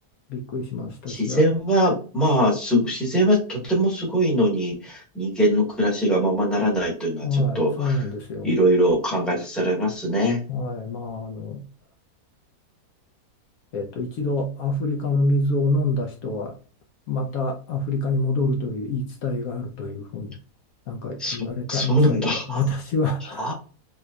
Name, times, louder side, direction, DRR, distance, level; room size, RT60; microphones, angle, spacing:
voice 1, 0.3-1.5 7.2-8.5 10.5-11.6 13.7-16.5 17.1-20.3 20.9-22.0 22.3-23.5, left 2 dB, 70° left, 1.0 m, -26 dB
voice 2, 1.1-8.0 8.4-10.4 21.2-22.6 23.4-23.5, equal, ahead, 1.0 m, -22 dB
3.3 x 3.0 x 2.2 m
omnidirectional pair, 1.7 m